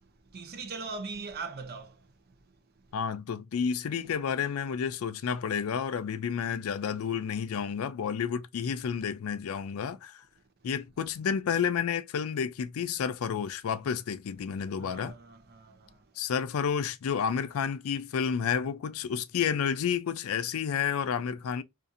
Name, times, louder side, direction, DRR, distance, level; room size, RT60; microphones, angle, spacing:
voice 1, 0.3-2.3 14.8-16.1, right 4 dB, 45° right, 0.5 m, -41 dB
voice 2, 2.9-10.2 10.6-15.2 16.2-21.6, left 7 dB, 70° left, 0.4 m, -30 dB
2.6 x 2.4 x 2.4 m
head